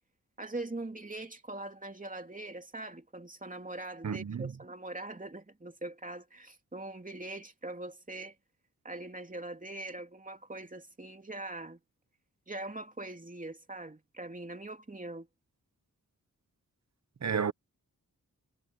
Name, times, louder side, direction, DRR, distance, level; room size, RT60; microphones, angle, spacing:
voice 1, 0.4-8.3 8.8-11.8 12.5-15.3, right 2 dB, 25° right, 3.0 m, -42 dB
voice 2, 4.0-4.5 17.2-17.5, right 6 dB, 50° right, 1.0 m, -31 dB
wide cardioid pair, 100°, 34 cm